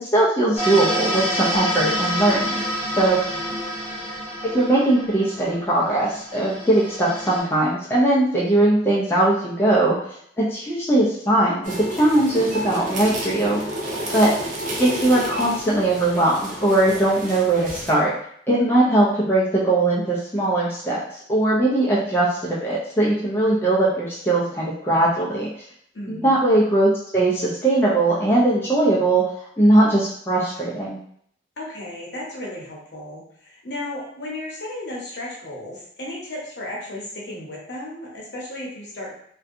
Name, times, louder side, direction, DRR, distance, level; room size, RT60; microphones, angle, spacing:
voice 1, 0.0-2.6 3.0-3.2 4.5-13.6 14.1-14.3 14.8-18.1 18.5-25.5 26.1-29.2 29.6-31.0, right 1 dB, 10° left, -6 dB, 0.4 m, -20 dB
sound 1, 0.6-7.4, equal, 35° left, 0.9 m, -28 dB
voice 2, 3.0-3.6 14.1-14.2 25.9-26.4 31.6-39.1, left 1 dB, 60° left, -4 dB, 0.8 m, -35 dB
sound 2, 11.6-17.9, right 1 dB, 40° right, 0.5 m, -30 dB
2.6 x 2.2 x 2.5 m, 0.67 s
head